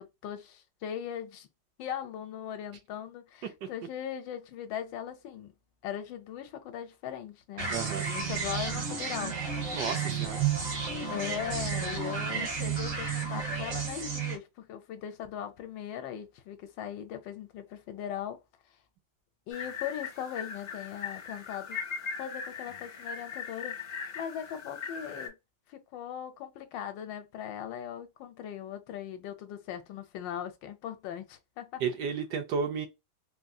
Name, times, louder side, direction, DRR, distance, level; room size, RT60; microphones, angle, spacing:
voice 1, 0.0-1.5 1.8-5.5 5.8-9.4 11.1-18.4 19.5-21.8 22.2-23.8 24.1-25.4 25.7-31.8, left 9 dB, 80° left, 1.3 m, -39 dB
sound 1, 7.6-14.4, right 6 dB, 50° right, 1.4 m, -32 dB
voice 2, 7.7-8.1 9.7-10.4 31.8-32.9, right 6 dB, 75° right, 1.1 m, -32 dB
sound 2, 19.5-25.3, left 6 dB, 40° left, 1.5 m, -39 dB
3.7 x 2.6 x 2.3 m
omnidirectional pair, 2.0 m